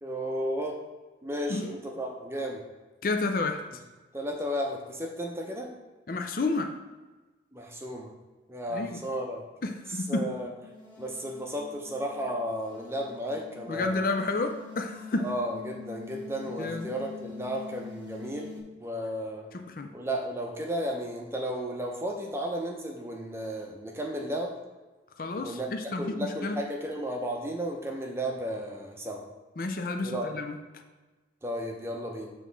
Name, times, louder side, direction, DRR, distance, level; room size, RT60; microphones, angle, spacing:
voice 1, 0.0-0.8 1.2-2.6 4.1-5.7 7.5-8.1 8.5-9.4 10.1-10.5 11.0-14.1 15.2-19.5 19.9-24.5 25.4-25.7 26.0-29.2 30.0-30.4 31.4-32.3, equal, 15° right, 1 dB, 0.7 m, -34 dB
voice 2, 3.0-3.6 6.1-6.8 8.7-9.0 9.6-10.3 13.7-15.3 16.6-16.9 19.5-19.9 25.2-26.7 29.6-30.6, left 3 dB, 50° left, 6 dB, 0.5 m, -30 dB
sound 1, 10.4-18.6, left 4 dB, 5° left, 1.4 m, -45 dB
8.0 x 3.1 x 3.9 m, 1.2 s
head